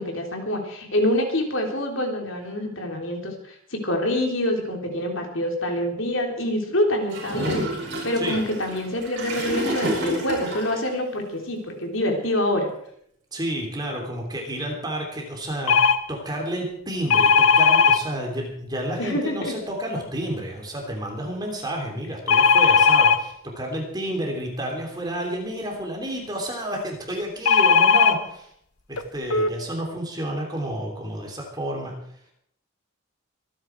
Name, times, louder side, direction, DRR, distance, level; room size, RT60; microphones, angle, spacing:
voice 1, 0.0-12.7 19.0-19.5, left 1 dB, 65° left, 2 dB, 3.5 m, -26 dB
Gurgling / Toilet flush, 7.1-10.8, right 1 dB, 50° right, 7.0 m, -29 dB
voice 2, 13.3-28.5 28.9-31.9, right 1 dB, 20° right, 1 dB, 3.3 m, -30 dB
sound 1, 15.7-16.0 17.1-18.0 22.3-23.2 27.4-28.1 29.0-29.1 29.3-29.5, left 6 dB, 90° left, 1.2 m, -16 dB
25.0 x 10.0 x 4.7 m, 0.67 s
head